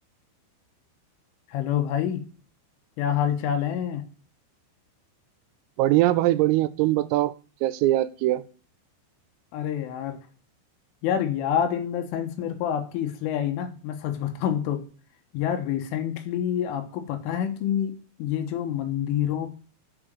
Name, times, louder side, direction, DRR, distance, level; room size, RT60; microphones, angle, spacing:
voice 1, 1.5-2.2 3.0-4.0 9.5-10.2 11.0-14.8 15.3-19.5, left 9 dB, 80° left, 6 dB, 3.7 m, -27 dB
voice 2, 5.8-7.3 7.6-8.4, right 15 dB, 90° right, 16 dB, 3.3 m, -22 dB
10.5 x 5.0 x 7.5 m, 0.40 s
omnidirectional pair, 5.8 m